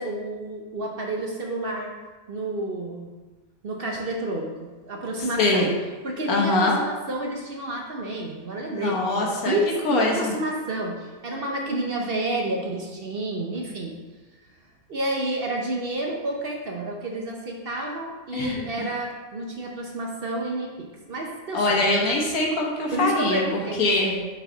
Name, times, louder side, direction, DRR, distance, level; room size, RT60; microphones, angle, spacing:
voice 1, 0.0-1.9 2.3-3.1 3.6-5.7 6.0-14.0 14.9-21.8 22.9-24.3, right 1 dB, 50° right, 0 dB, 0.9 m, -30 dB
voice 2, 5.4-5.7 6.3-6.8 8.7-9.6 9.8-10.3 18.3-18.7 21.5-24.1, left 2 dB, 85° left, -1 dB, 1.7 m, -23 dB
6.4 x 4.6 x 3.9 m, 1.2 s
omnidirectional pair, 1.5 m